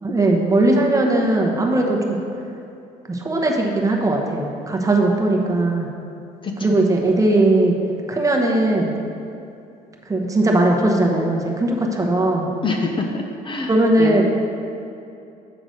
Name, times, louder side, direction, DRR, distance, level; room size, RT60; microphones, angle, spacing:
voice 1, 0.0-2.2 3.1-5.9 6.6-7.7 8.1-8.9 10.1-12.5 13.7-14.3, right 2 dB, 20° right, 0 dB, 1.0 m, -18 dB
voice 2, 6.4-6.8 12.6-14.2, left 3 dB, 30° left, 2 dB, 0.7 m, -26 dB
7.9 x 3.9 x 6.4 m, 2.7 s
cardioid pair, 110°, 17 cm